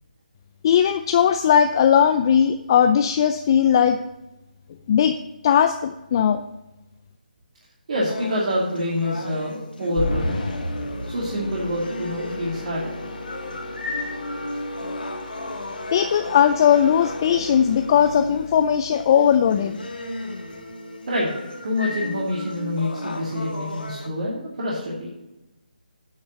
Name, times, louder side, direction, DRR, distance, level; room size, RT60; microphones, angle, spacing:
voice 1, 0.6-4.0 4.9-5.2 5.4-6.4 15.9-19.8, left 8 dB, 30° left, 9 dB, 0.3 m, -18 dB
voice 2, 7.9-10.5 11.0-13.0 21.1-21.3 21.6-25.1, left 1 dB, 50° right, -5 dB, 2.4 m, -26 dB
sound 1, 8.1-24.1, left 1 dB, 90° left, 1.8 m, -35 dB
sound 2, 10.0-19.3, left 1 dB, 60° left, 2.5 m, -34 dB
9.0 x 5.5 x 6.6 m, 0.97 s
figure-of-eight pair, 160°, 5 cm